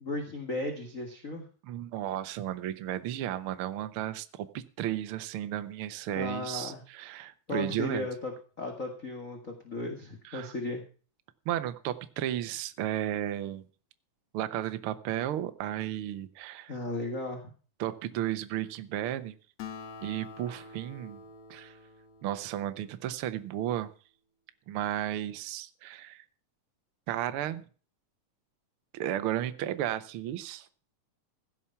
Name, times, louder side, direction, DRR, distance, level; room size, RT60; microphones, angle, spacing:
voice 1, 0.0-1.4 6.2-6.8 7.5-8.3 8.6-10.8 16.7-17.5, left 2 dB, 30° left, 3 dB, 1.8 m, -35 dB
voice 2, 1.6-8.1 10.3-10.5 11.4-13.6 14.3-16.7 17.8-19.3 20.0-21.2 21.5-21.7 22.2-23.9 24.7-26.2 27.1-27.6 28.9-30.7, right 12 dB, 90° right, 11 dB, 1.1 m, -34 dB
Acoustic guitar, 19.6-23.3, left 5 dB, 60° left, 2.5 m, -47 dB
16.0 x 7.3 x 5.7 m, 0.39 s
omnidirectional pair, 3.9 m